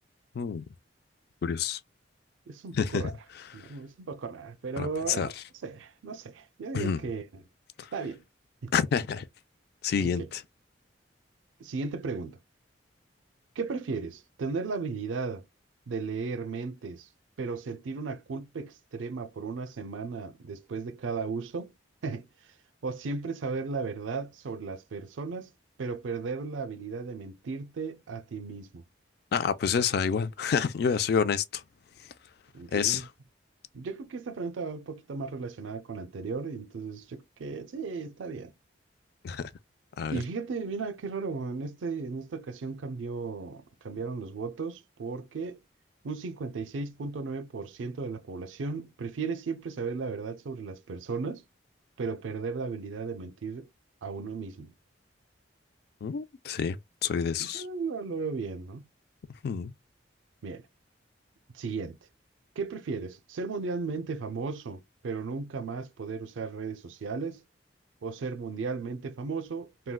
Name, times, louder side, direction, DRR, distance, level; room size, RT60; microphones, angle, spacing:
voice 1, 1.4-1.8 2.7-3.0 3.6-3.7 4.8-5.3 6.7-7.0 7.8-7.9 8.7-9.3 9.8-10.4 29.3-31.6 32.7-33.1 39.2-39.5 40.0-40.2 56.0-57.6 59.4-59.7, left 6 dB, 55° left, 0.3 m, -28 dB
voice 2, 2.5-3.1 3.5-5.3 5.6-7.4 7.9-8.2 8.6-8.7 10.0-10.3 11.6-12.4 13.6-15.5 15.9-17.1 17.4-21.7 22.0-22.3 22.8-25.5 25.8-28.8 32.5-33.1 33.7-38.5 40.1-45.6 46.0-51.4 52.0-53.7 54.0-54.7 57.4-58.8 60.4-60.7 61.5-62.0 62.6-67.4 68.0-69.9, right 4 dB, 85° right, 0.4 m, -35 dB
3.5 x 2.2 x 2.2 m
head